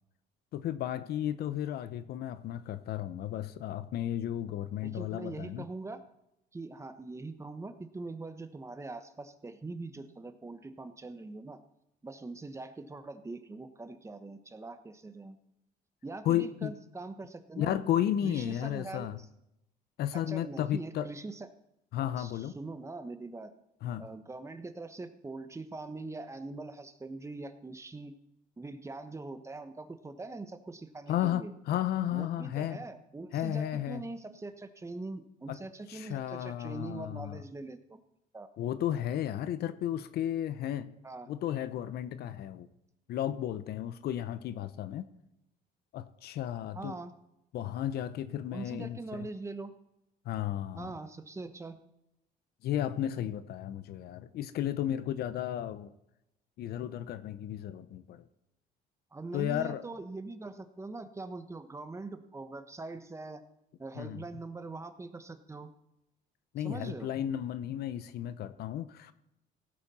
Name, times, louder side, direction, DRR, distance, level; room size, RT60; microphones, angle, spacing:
voice 1, 0.5-5.7 16.2-16.7 17.6-19.2 20.0-21.1 21.9-22.6 23.8-24.1 31.1-32.8 33.3-34.0 35.5-35.6 35.9-37.4 38.6-40.9 41.3-42.7 43.1-45.1 45.9-46.9 47.5-49.3 50.2-50.9 52.6-55.9 56.6-58.2 59.3-59.8 64.0-64.2 66.5-69.1, left 11 dB, 70° left, 13 dB, 0.9 m, -33 dB
voice 2, 4.8-6.0 6.5-11.6 12.0-15.4 16.0-17.8 18.2-19.3 20.1-21.5 22.2-23.5 24.0-28.1 28.6-31.5 32.1-38.0 38.3-38.5 41.0-41.3 46.7-47.1 48.5-49.7 50.7-51.8 59.1-63.4 63.8-65.7 66.6-67.1, right 3 dB, 15° right, 9 dB, 1.1 m, -42 dB
17.0 x 9.2 x 4.3 m, 0.85 s
cardioid pair, 110°, 17 cm